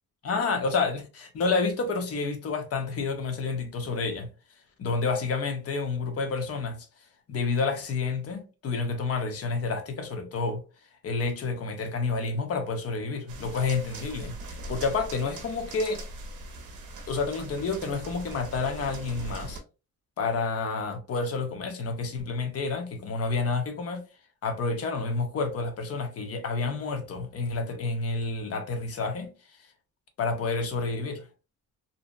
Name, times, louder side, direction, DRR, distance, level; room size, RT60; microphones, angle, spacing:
voice 1, 0.2-4.3 4.8-6.9 7.3-10.6 11.0-16.0 17.1-19.6 20.2-24.0 24.4-29.3 30.2-31.2, left 4 dB, 45° left, 0.6 m, -29 dB
sound 1, 13.3-19.6, right 2 dB, 60° right, 0.7 m, -41 dB
2.7 x 2.0 x 2.4 m
cardioid pair, 160°, 35 cm